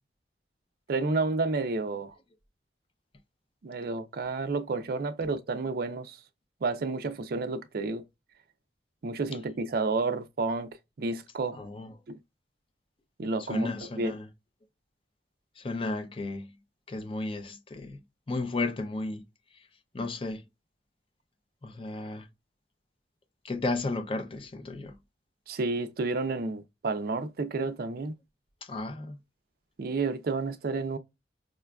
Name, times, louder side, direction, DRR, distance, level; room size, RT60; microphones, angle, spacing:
voice 1, 0.9-2.1 3.6-6.2 6.6-8.0 9.0-10.7 11.0-11.6 13.2-13.7 14.0-14.1 25.5-28.1 29.8-31.0, right 3 dB, 55° right, 0.4 m, -30 dB
voice 2, 11.5-11.9 13.5-14.3 15.6-16.5 16.9-18.0 18.3-19.2 19.9-20.4 21.6-22.3 23.4-25.0 28.6-29.2, left 2 dB, 30° left, 0.5 m, -33 dB
4.9 x 2.3 x 2.2 m
head